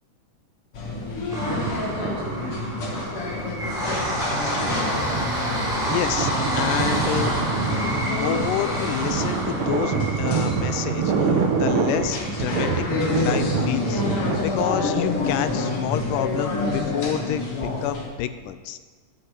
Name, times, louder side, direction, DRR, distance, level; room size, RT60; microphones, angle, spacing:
sound 1, 0.7-18.1, left 3 dB, 50° left, 2.4 m, -29 dB
sound 2, 1.3-15.4 15.8-15.9 16.2-16.3, right 1 dB, ahead, 3.0 m, -30 dB
sound 3, 1.3-3.5 4.0-14.9, right 5 dB, 65° right, 1.4 m, -26 dB
voice 1, 5.9-7.3 7.9-12.9 13.2-18.8, left 11 dB, 85° left, 11 dB, 2.2 m, -29 dB
10.5 x 8.1 x 7.9 m, 1.4 s
omnidirectional pair, 3.8 m